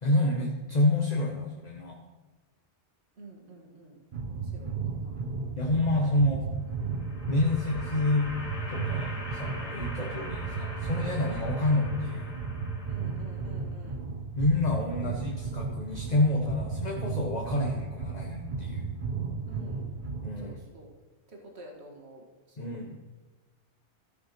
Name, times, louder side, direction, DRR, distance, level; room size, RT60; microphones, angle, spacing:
voice 1, 0.0-2.0 5.5-6.4 7.3-8.3 8.7-12.3 14.4-18.9 20.2-20.6 22.6-23.0, left 1 dB, 40° left, 0 dB, 1.2 m, -28 dB
voice 2, 3.2-4.0 4.3-6.1 12.9-14.0 19.5-19.9 20.4-20.9 21.3-22.7, right 2 dB, 70° right, 0 dB, 2.1 m, -50 dB
sound 1, 4.1-20.5, right 4 dB, 50° right, 0.9 m, -35 dB
sound 2, 6.6-13.7, left 1 dB, 75° left, 2.4 m, -42 dB
14.0 x 5.9 x 5.9 m, 1.2 s
omnidirectional pair, 1.1 m